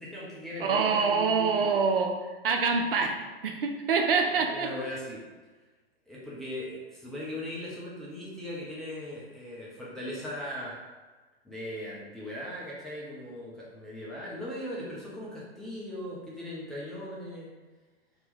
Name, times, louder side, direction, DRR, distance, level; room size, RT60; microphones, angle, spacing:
voice 1, 0.0-1.6 4.3-5.2 6.1-10.8 11.4-17.5, left 1 dB, ahead, -7 dB, 0.5 m, -39 dB
voice 2, 0.6-2.2 2.4-4.7, right 5 dB, 65° right, 4 dB, 0.5 m, -26 dB
2.8 x 2.6 x 3.5 m, 1.3 s
figure-of-eight pair, 105°, 31 cm